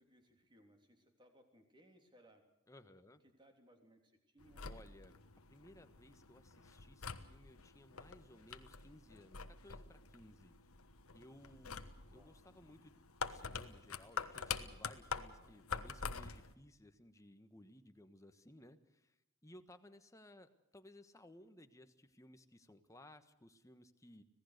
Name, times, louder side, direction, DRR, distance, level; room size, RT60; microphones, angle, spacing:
voice 1, 0.0-2.5 3.2-4.8 12.1-12.3 18.6-18.7, equal, 20° right, 4 dB, 3.3 m, -66 dB
voice 2, 2.7-3.2 4.6-5.1 5.5-10.7 11.1-24.2, left 1 dB, 15° left, 8 dB, 1.3 m, -60 dB
sound 1, 4.4-16.5, left 5 dB, 85° left, 1.3 m, -47 dB
26.0 x 17.5 x 6.7 m, 0.89 s
head